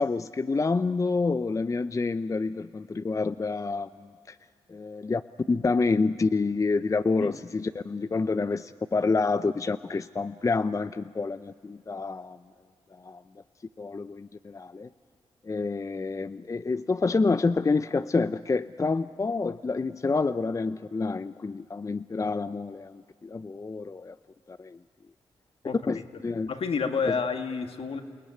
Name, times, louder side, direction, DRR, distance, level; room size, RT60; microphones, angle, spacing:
voice 1, 0.0-4.4 4.7-5.2 5.5-12.4 13.0-13.2 13.8-14.9 15.4-24.1 24.5-24.8 25.9-26.5 27.1-27.2, left 4 dB, 30° left, 11 dB, 0.6 m, -28 dB
voice 2, 26.5-28.0, left 5 dB, 60° left, 6 dB, 1.9 m, -29 dB
28.5 x 17.5 x 10.0 m, 2.1 s
supercardioid pair, 50°, 11 cm